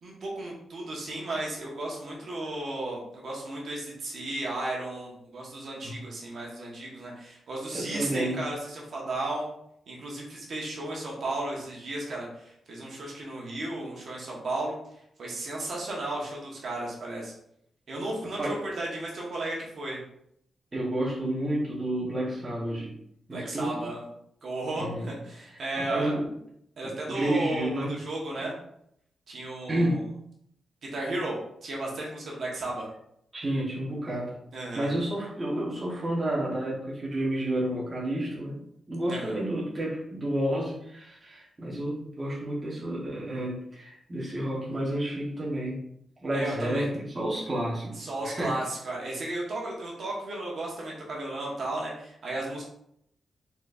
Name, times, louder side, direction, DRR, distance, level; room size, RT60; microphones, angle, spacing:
voice 1, 0.0-9.5 9.9-14.8 15.2-17.3 17.9-20.0 23.3-24.0 24.4-26.1 26.8-28.5 29.3-30.0 30.8-32.9 34.5-34.9 39.1-39.3 46.3-46.8 48.0-52.6, right 2 dB, 55° right, -3 dB, 1.1 m, -34 dB
voice 2, 7.7-8.5 18.4-18.6 20.7-22.9 23.3-23.8 24.7-25.1 25.4-26.3 26.8-28.0 29.7-30.0 33.3-34.4 34.7-38.6 38.9-45.8 46.2-48.0 48.2-48.5, right 1 dB, 20° right, -6 dB, 1.0 m, -30 dB
4.4 x 4.0 x 2.5 m, 0.73 s
wide cardioid pair, 170°, 0 cm